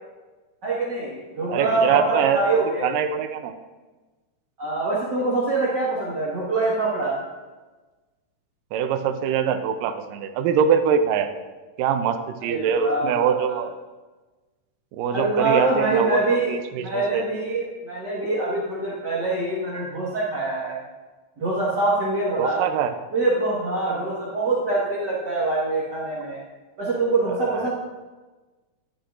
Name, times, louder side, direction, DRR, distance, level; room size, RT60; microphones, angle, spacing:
voice 1, 0.6-2.9 4.6-7.2 12.5-13.6 15.1-20.8 21.4-22.6 23.1-26.4 26.8-27.7, right 2 dB, 45° right, -7 dB, 1.4 m, -24 dB
voice 2, 1.5-3.5 8.7-11.3 11.8-13.7 14.9-17.2 22.4-22.9 27.4-27.7, right 7 dB, 80° right, 9 dB, 2.2 m, -23 dB
11.5 x 8.7 x 2.5 m, 1.2 s
omnidirectional pair, 3.9 m